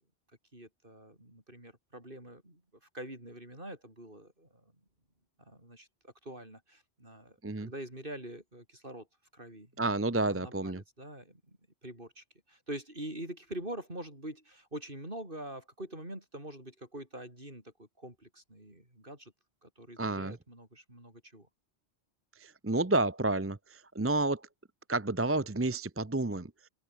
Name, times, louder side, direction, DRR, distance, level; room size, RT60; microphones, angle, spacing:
voice 1, 0.5-2.6 2.9-4.6 5.4-9.1 9.3-19.3 19.6-21.5, right 1 dB, 50° right, 8.4 m, -45 dB
voice 2, 9.8-10.8 20.0-20.4 22.4-24.5 24.9-26.7, right 2 dB, 15° right, 0.7 m, -30 dB
open air
omnidirectional pair, 1.1 m